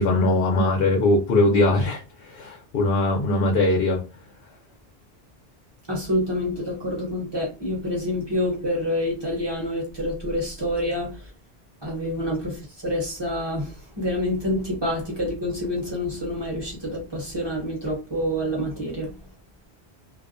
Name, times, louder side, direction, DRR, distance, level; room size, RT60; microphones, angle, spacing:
voice 1, 0.0-4.0, left 2 dB, 65° left, 0.8 m, -21 dB
voice 2, 5.9-11.2 11.8-19.1, left 1 dB, 25° right, 0.8 m, -27 dB
2.3 x 2.1 x 2.5 m
omnidirectional pair, 1.1 m